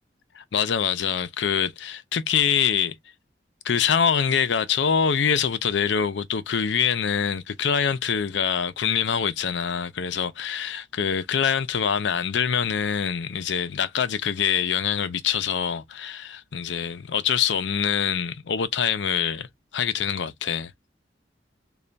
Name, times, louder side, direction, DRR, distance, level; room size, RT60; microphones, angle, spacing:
voice 1, 0.4-2.9 3.6-19.5 19.7-20.7, left 7 dB, 75° left, 0.5 m, -24 dB
3.3 x 2.3 x 3.9 m
head